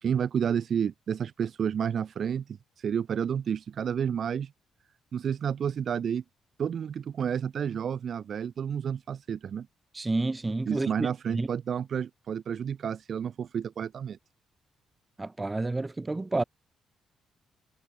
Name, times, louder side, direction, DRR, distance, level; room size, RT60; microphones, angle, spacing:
voice 1, 0.0-4.5 5.1-6.2 6.6-9.7 10.7-14.2, right 8 dB, 55° right, 1.8 m, -30 dB
voice 2, 9.9-11.1 11.3-11.5 15.2-16.4, right 2 dB, 20° right, 1.5 m, -29 dB
cardioid pair, 90°, 0 cm